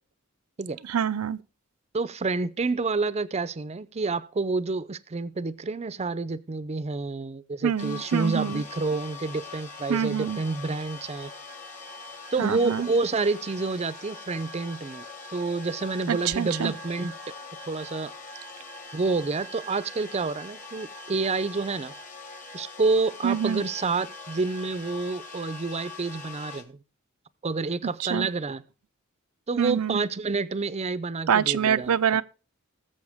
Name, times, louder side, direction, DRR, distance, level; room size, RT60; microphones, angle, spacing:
voice 1, 0.9-1.4 7.6-8.6 9.9-10.4 12.4-12.9 16.1-16.7 23.2-23.6 28.1-28.3 29.6-30.0 31.3-32.2, right 8 dB, 90° right, 0.5 m, -25 dB
voice 2, 1.9-11.3 12.3-17.2 17.7-18.1 18.9-21.9 22.5-26.8 27.4-28.6 29.5-32.2, right 3 dB, 30° right, 0.5 m, -28 dB
sound 1, 7.8-26.6, left 3 dB, 40° left, 1.8 m, -42 dB
20.5 x 7.1 x 3.5 m
head